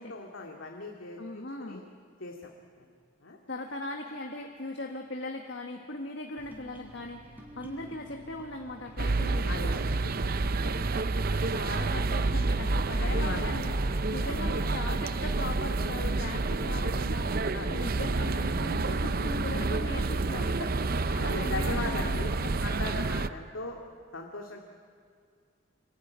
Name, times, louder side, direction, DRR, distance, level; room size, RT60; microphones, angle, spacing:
voice 1, 0.0-1.8 2.2-2.5 2.8-2.9 3.2-3.4 9.5-10.4 10.6-10.8 11.3-11.5 12.2-12.6 13.0-13.5 14.2-14.4 15.8-15.9 16.7-16.8 17.5-17.9 20.5-20.7 21.2-23.8 24.1-24.6, left 2 dB, 90° left, 1 dB, 2.3 m, -39 dB
voice 2, 1.2-1.8 3.5-9.7 11.5-20.6 21.0-22.5, left 2 dB, 65° left, 3 dB, 1.7 m, -39 dB
sound 1, 6.4-13.6, equal, 10° right, 3.6 m, -48 dB
sound 2, 9.0-23.3, right 3 dB, 50° right, 0.7 m, -29 dB
26.0 x 22.5 x 9.5 m, 2.2 s
head